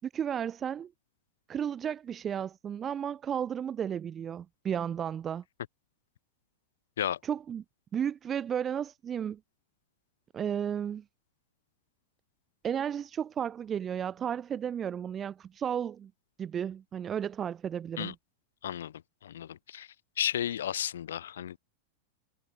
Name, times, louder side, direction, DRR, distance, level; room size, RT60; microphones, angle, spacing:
voice 1, 0.0-0.9 1.5-5.4 7.2-7.6 7.9-9.4 10.3-11.0 12.6-16.1 16.4-18.1, right 8 dB, 25° right, 4.2 m, -33 dB
voice 2, 18.6-18.9 19.2-19.9 20.2-21.6, left 10 dB, 60° left, 6.7 m, -33 dB
figure-of-eight pair, 90°, 0 cm